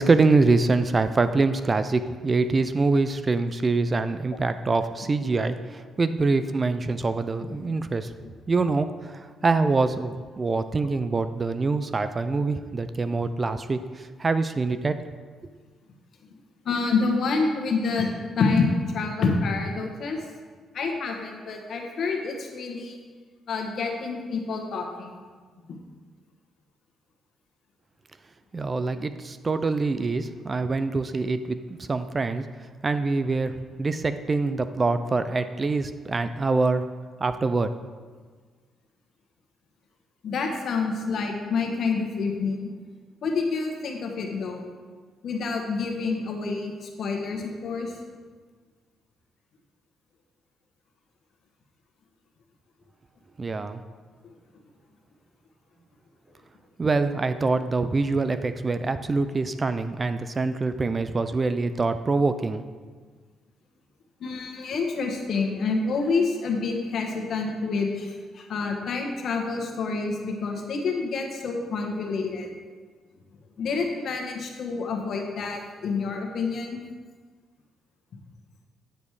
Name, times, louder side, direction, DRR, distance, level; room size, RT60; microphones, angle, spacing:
voice 1, 0.0-8.1 8.5-15.0 28.5-32.4 32.8-36.8 37.2-37.7 53.4-53.8 56.8-62.6, right 3 dB, 30° right, 11 dB, 0.4 m, -25 dB
voice 2, 16.6-20.2 20.7-23.0 23.5-25.2 25.7-25.8 40.2-42.7 43.2-44.7 45.2-47.9 64.2-72.5 73.6-76.8, left 4 dB, 60° left, 2 dB, 1.3 m, -28 dB
8.9 x 5.2 x 4.8 m, 1.5 s
cardioid pair, 90°, 0 cm